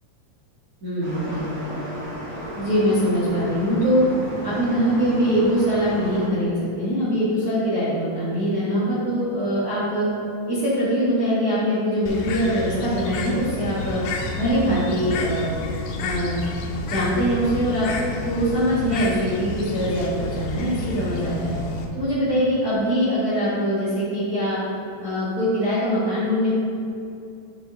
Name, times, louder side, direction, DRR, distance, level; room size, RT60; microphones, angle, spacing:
voice 1, 0.8-1.5 2.5-4.0 4.4-10.1 10.5-14.0 14.4-15.6 16.0-16.4 16.8-17.9 18.2-21.5 21.9-24.6 25.0-26.5, equal, 85° right, -10 dB, 0.8 m, -23 dB
sound 1, 1.0-6.3, equal, 60° right, 1.3 m, -34 dB
Bird, 12.1-21.9, left 3 dB, 80° left, 2.5 m, -30 dB
9.7 x 4.4 x 3.8 m, 2.6 s
omnidirectional pair, 4.6 m